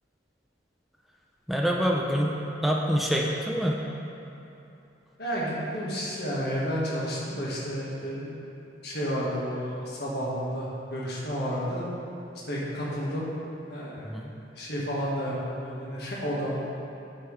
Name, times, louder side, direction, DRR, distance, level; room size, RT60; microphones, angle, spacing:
voice 1, 1.5-2.3 2.6-3.8 14.0-14.3, equal, ahead, -2 dB, 0.4 m, -26 dB
voice 2, 5.2-8.3 8.8-11.8 12.5-13.3 13.7-14.1 14.5-16.6, equal, 60° left, -6 dB, 1.5 m, -31 dB
8.8 x 5.5 x 3.2 m, 2.9 s
head